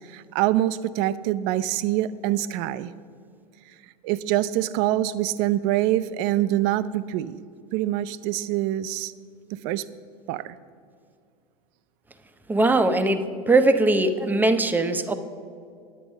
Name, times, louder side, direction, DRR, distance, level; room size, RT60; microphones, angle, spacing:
voice 1, 0.1-2.9 4.0-7.4 7.7-9.1 9.5-9.8 10.3-10.5, right 13 dB, 55° right, 16 dB, 0.5 m, -25 dB
voice 2, 12.5-13.2 13.5-15.1, right 2 dB, 10° right, 9 dB, 0.7 m, -20 dB
9.2 x 9.2 x 5.4 m, 2.3 s
hypercardioid pair, 95°, 20 cm